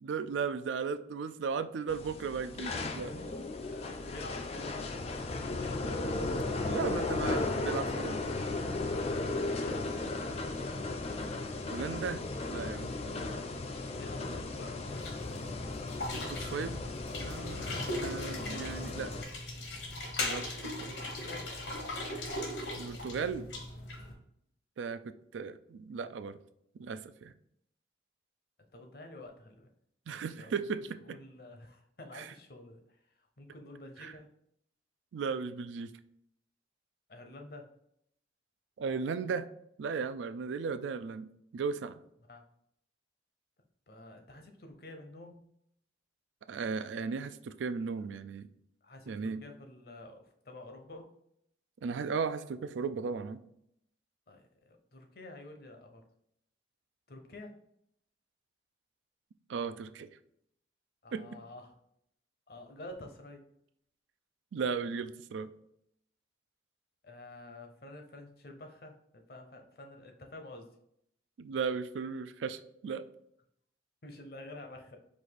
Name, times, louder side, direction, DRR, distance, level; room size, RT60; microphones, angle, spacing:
voice 1, 0.0-3.1 6.6-8.4 11.7-12.2 12.5-13.2 16.3-16.8 17.2-19.1 20.2-20.9 22.8-23.5 24.8-25.0 25.3-26.4 26.8-27.3 30.1-31.2 32.1-32.3 34.0-34.1 35.1-35.9 38.8-39.5 39.8-42.0 46.5-48.5 49.1-49.4 51.8-53.4 59.5-60.1 61.1-61.2 64.5-65.5 71.4-73.0, right 5 dB, 90° right, 12 dB, 0.4 m, -36 dB
sound 1, 1.9-19.2, left 2 dB, 35° left, 0.3 m, -36 dB
voice 2, 3.6-6.2 9.5-10.4 14.0-14.8 20.9-21.5 28.7-29.7 30.1-30.5 31.0-32.8 33.4-34.3 37.1-37.7 42.3-42.4 43.9-45.4 48.8-51.1 54.3-56.0 57.1-57.5 61.0-61.7 62.5-63.4 67.0-70.7 74.0-75.0, left 2 dB, 55° left, 4 dB, 0.7 m, -49 dB
sound 2, 14.9-24.1, left 1 dB, 75° left, 1.1 m, -39 dB
4.8 x 2.6 x 3.9 m, 0.73 s
head